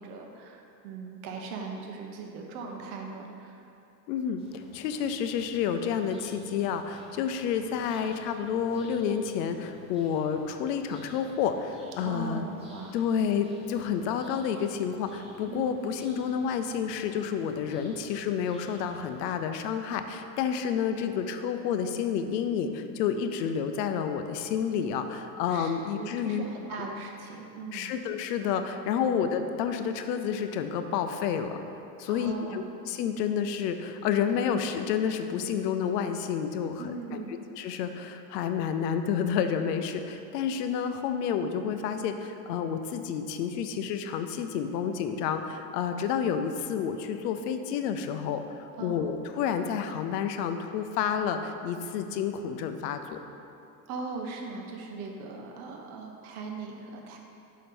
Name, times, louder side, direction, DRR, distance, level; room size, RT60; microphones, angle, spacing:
voice 1, 0.0-3.6 12.0-12.9 15.5-15.7 25.5-27.9 29.0-29.2 32.1-32.6 36.8-37.4 48.8-49.0 53.9-57.2, right 4 dB, 65° right, 2 dB, 1.0 m, -39 dB
voice 2, 4.1-12.5 12.9-26.4 27.7-31.6 32.0-36.8 37.1-37.2 37.5-53.2, left 7 dB, 85° left, 8 dB, 0.6 m, -30 dB
sound 1, 4.4-19.4, left 1 dB, 10° right, 1.1 m, -54 dB
5.7 x 5.1 x 4.2 m, 2.7 s
supercardioid pair, 150°, 48 cm